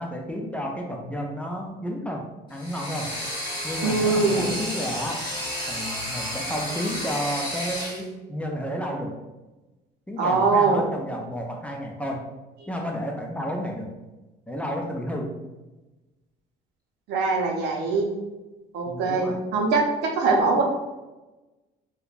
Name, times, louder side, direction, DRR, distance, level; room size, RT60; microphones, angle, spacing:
voice 1, 0.0-2.2 2.5-3.1 3.6-5.2 5.7-9.1 10.1-12.2 12.7-13.9 14.5-15.3 18.9-19.4, equal, 10° left, 0 dB, 0.4 m, -31 dB
sound 1, 2.5-8.0, equal, 25° left, 0.9 m, -32 dB
voice 2, 3.8-4.6 10.2-10.9 17.1-18.1 18.7-20.6, right 3 dB, 80° right, 1 dB, 0.6 m, -22 dB
3.1 x 2.2 x 2.4 m, 1.1 s
cardioid pair, 110°, 17 cm